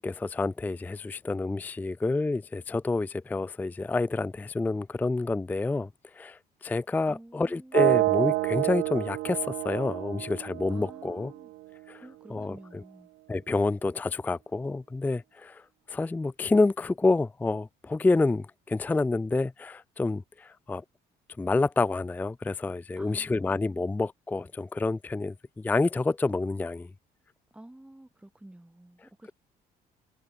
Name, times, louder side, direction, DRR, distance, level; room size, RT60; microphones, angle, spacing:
voice 1, 0.0-11.3 11.9-12.0 12.3-12.8 13.3-15.6 15.9-20.8 21.4-26.9, left 3 dB, 10° left, 0.4 m, -28 dB
voice 2, 7.1-8.0 10.7-11.5 12.0-13.1 23.0-23.8 27.5-29.3, right 1 dB, 5° right, 3.7 m, -50 dB
sound 1, 7.7-11.7, right 19 dB, 80° right, 0.7 m, -28 dB
cardioid pair, 110°, 17 cm